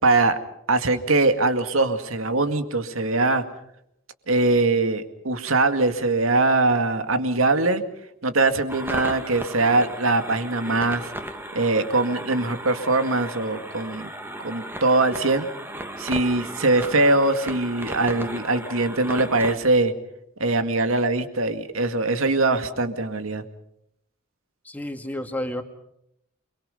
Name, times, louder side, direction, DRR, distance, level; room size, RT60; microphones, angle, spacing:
voice 1, 0.0-0.4 0.7-3.4 4.3-7.8 8.2-11.1 11.5-14.1 14.4-15.5 16.0-19.9 20.4-23.4, right 2 dB, 90° right, 8 dB, 2.2 m, -22 dB
sound 1, 8.7-19.6, right 1 dB, 10° right, 1.9 m, -35 dB
voice 2, 24.6-25.6, left 1 dB, 10° left, 5 dB, 2.2 m, -30 dB
29.0 x 22.5 x 5.6 m, 0.77 s
head